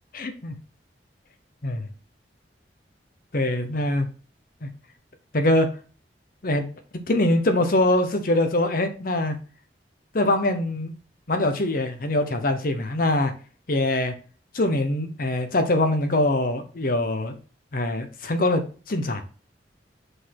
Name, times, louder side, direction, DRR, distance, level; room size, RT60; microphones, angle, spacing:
voice 1, 0.1-0.5 1.6-1.8 3.3-4.1 4.6-4.7 5.3-5.7 6.4-6.7 7.1-9.4 10.1-10.9 11.3-13.3 13.7-14.1 14.5-17.3 17.7-19.2, left 1 dB, 55° left, 7 dB, 1.0 m, -23 dB
5.4 x 4.0 x 5.8 m, 0.37 s
head